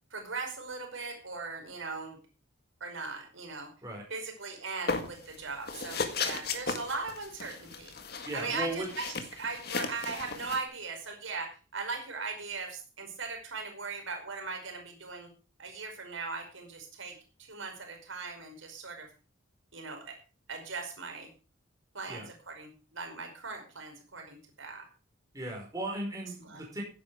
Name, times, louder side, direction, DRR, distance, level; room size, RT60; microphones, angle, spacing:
voice 1, 0.1-2.2 2.8-3.7 4.1-7.9 8.3-9.0 9.3-15.3 15.6-17.1 17.5-19.1 19.7-20.1 20.5-21.3 21.9-24.8 26.4-26.6, right 4 dB, 80° right, 3 dB, 5.2 m, -39 dB
sound 1, 4.9-5.4 5.7-10.6, left 4 dB, 50° left, 1.8 m, -35 dB
voice 2, 8.2-8.9 22.1-22.3 25.3-26.8, right 1 dB, 15° right, -1 dB, 5.1 m, -36 dB
16.0 x 9.5 x 4.8 m, 0.35 s
head